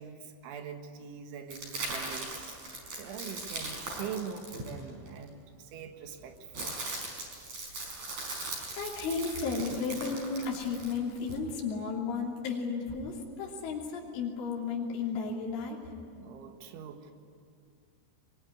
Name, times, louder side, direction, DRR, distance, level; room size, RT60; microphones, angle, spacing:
voice 1, 0.0-6.8 16.1-17.1, right 7 dB, 75° right, 5 dB, 4.0 m, -43 dB
sound 1, 1.5-5.2 6.1-11.4, right 2 dB, 40° right, 6.3 m, -39 dB
voice 2, 8.8-15.8, left 5 dB, 80° left, -3 dB, 5.6 m, -33 dB
24.0 x 21.5 x 9.9 m, 2.5 s
omnidirectional pair, 5.6 m